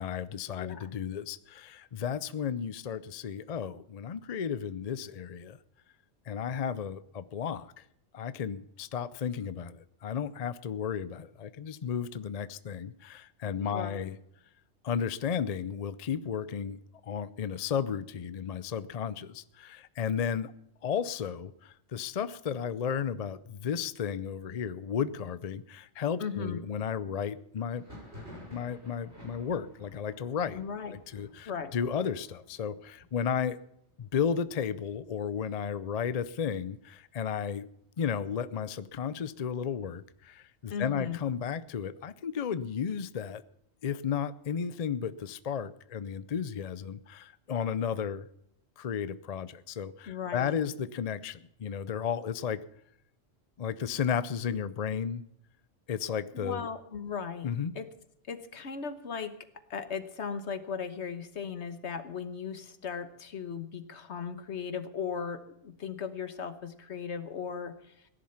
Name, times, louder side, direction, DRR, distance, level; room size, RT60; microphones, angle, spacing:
voice 1, 0.0-5.6 6.3-7.8 8.1-14.2 14.8-16.8 17.0-20.5 20.8-27.8 28.5-30.6 31.1-33.6 34.0-37.7 38.0-43.4 43.8-48.3 48.8-52.6 53.6-55.2 55.9-56.7 57.4-57.7, left 7 dB, 45° left, 15 dB, 0.5 m, -33 dB
voice 2, 0.6-0.9 13.6-14.1 26.2-26.6 30.5-31.0 31.5-31.7 40.7-41.2 50.1-50.6 56.3-57.5 57.7-57.9 58.3-59.3 59.7-68.1, left 6 dB, 75° left, 11 dB, 1.5 m, -37 dB
Thunder, 27.7-37.2 37.5-38.2 38.4-39.4 39.8-41.5, left 1 dB, 65° right, 6.9 m, -54 dB
17.0 x 10.5 x 5.8 m, 0.74 s
omnidirectional pair, 1.2 m